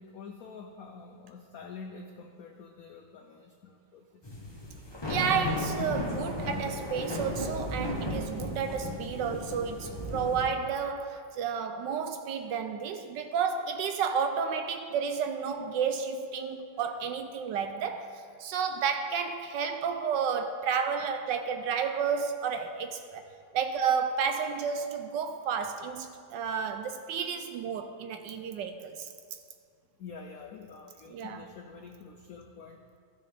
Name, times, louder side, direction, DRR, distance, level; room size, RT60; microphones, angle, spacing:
voice 1, 0.0-4.3 23.2-23.5 30.0-33.0, left 5 dB, 85° left, 4 dB, 0.7 m, -47 dB
sound 1, 4.2-10.4, left 1 dB, 20° left, 0.8 m, -35 dB
voice 2, 5.1-23.2 23.5-29.1 31.1-31.4, right 6 dB, 75° right, 7 dB, 1.1 m, -31 dB
15.0 x 6.2 x 3.4 m, 2.2 s
omnidirectional pair, 2.2 m